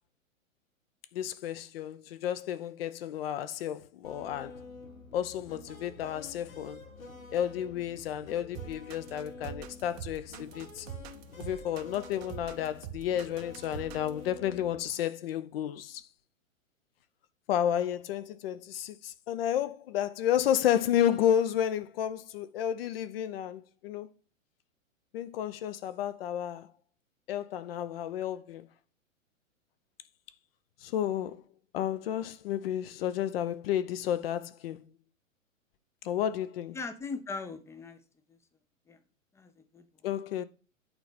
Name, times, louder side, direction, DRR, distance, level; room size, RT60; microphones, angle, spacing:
voice 1, 1.1-4.6 5.1-6.8 7.3-10.9 11.4-16.0 17.5-24.1 25.1-26.7 27.3-28.7 30.8-31.4 31.7-34.9 36.0-36.8 40.0-40.4, left 10 dB, 45° left, 0.8 m, -31 dB
sound 1, 4.0-14.8, left 3 dB, 90° left, 1.7 m, -48 dB
sound 2, 8.5-14.2, right 9 dB, 30° right, 0.8 m, -44 dB
voice 2, 36.7-38.0 38.3-38.4 38.9-39.0 39.3-40.2, left 4 dB, 5° left, 0.7 m, -40 dB
9.1 x 4.0 x 5.1 m
figure-of-eight pair, 110°, 40 cm